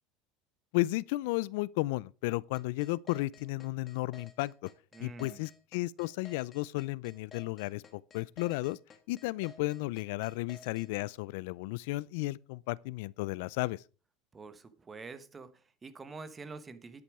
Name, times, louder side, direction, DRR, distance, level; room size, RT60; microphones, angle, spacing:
voice 1, 0.7-4.7 5.0-8.8 9.1-13.8, left 20 dB, 75° left, 0.4 m, -34 dB
sound 1, 2.5-10.9, left 3 dB, 25° left, 1.9 m, -54 dB
voice 2, 4.9-5.5 14.3-17.0, right 4 dB, 20° right, 1.1 m, -47 dB
10.5 x 8.5 x 4.8 m
supercardioid pair, 140°, 0 cm